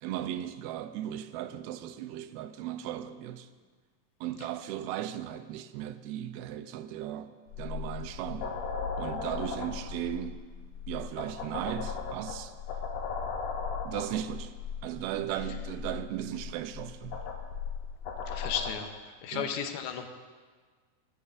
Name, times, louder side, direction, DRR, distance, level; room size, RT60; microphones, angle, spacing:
voice 1, 0.0-3.5 4.2-8.6 9.0-10.4 10.9-12.5 13.8-14.5 14.8-17.2 19.3-19.5, right 11 dB, 90° right, 2.4 m, -36 dB
sound 1, 7.5-18.7, left 5 dB, 65° left, 2.4 m, -37 dB
voice 2, 18.3-20.1, left 8 dB, 85° left, 2.7 m, -34 dB
15.5 x 13.5 x 2.5 m
omnidirectional pair, 4.3 m